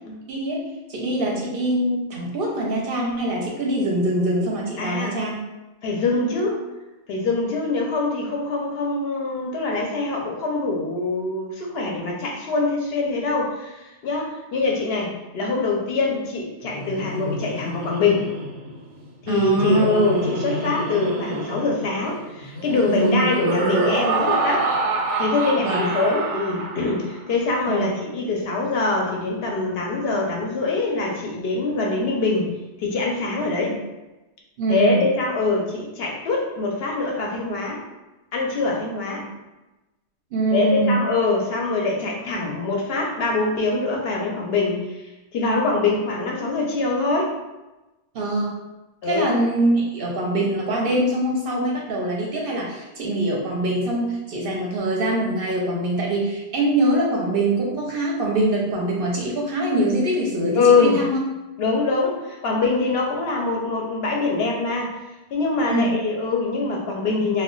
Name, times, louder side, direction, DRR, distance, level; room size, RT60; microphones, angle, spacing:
voice 1, 0.3-5.4 19.3-19.9 22.9-23.3 25.6-25.9 27.7-27.9 33.7-33.8 34.6-35.0 39.2-39.3 40.3-40.9 48.1-48.5 49.0-61.2 65.7-65.9, right 1 dB, 60° right, -2 dB, 0.7 m, -23 dB
voice 2, 4.8-5.2 5.8-6.6 7.1-18.3 19.2-24.7 25.2-32.5 32.8-33.8 34.7-37.8 38.3-39.3 40.5-47.3 49.0-49.3 60.5-61.0 61.6-65.0 65.3-67.4, left 3 dB, 65° left, -1 dB, 0.7 m, -23 dB
Laughter, 16.6-27.1, right 2 dB, 90° right, 0.9 m, -27 dB
2.2 x 2.1 x 3.7 m, 1.1 s
omnidirectional pair, 1.2 m